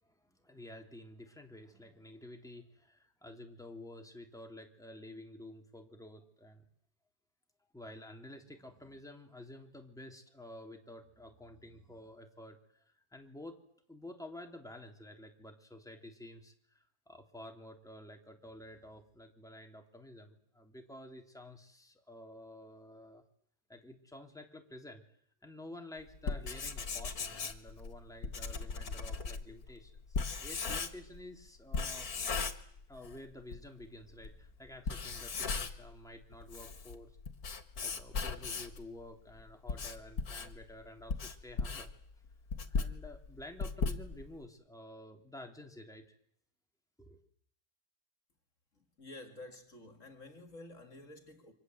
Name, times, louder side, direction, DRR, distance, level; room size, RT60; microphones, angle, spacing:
voice 1, 0.0-6.6 7.6-13.6 13.9-23.2 23.7-25.0 25.4-32.1 32.9-37.2 37.8-41.9 42.7-46.0 47.0-47.2, left 1 dB, ahead, 3.1 m, -51 dB
Writing, 26.1-31.2 31.7-33.2 33.5-33.6 34.2-34.3 34.8-35.9 36.3-38.8 39.4-44.4, left 4 dB, 75° left, 2.2 m, -37 dB
voice 2, 48.7-51.5, left 2 dB, 55° left, 2.8 m, -51 dB
29.0 x 25.5 x 8.0 m
omnidirectional pair, 1.6 m